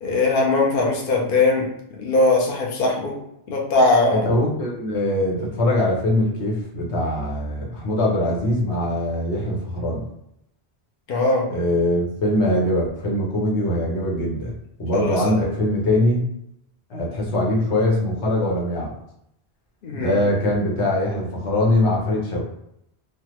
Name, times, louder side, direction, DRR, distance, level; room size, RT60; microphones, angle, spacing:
voice 1, 0.0-1.6 2.0-3.1 3.5-4.3 11.1-11.4 14.9-15.2 19.8-20.2, left 2 dB, 55° left, -1 dB, 0.8 m, -20 dB
voice 2, 4.1-10.1 11.5-16.3 16.9-18.9 19.9-22.4, left 1 dB, 85° left, -3 dB, 1.2 m, -22 dB
3.3 x 2.2 x 3.0 m, 0.78 s
omnidirectional pair, 1.1 m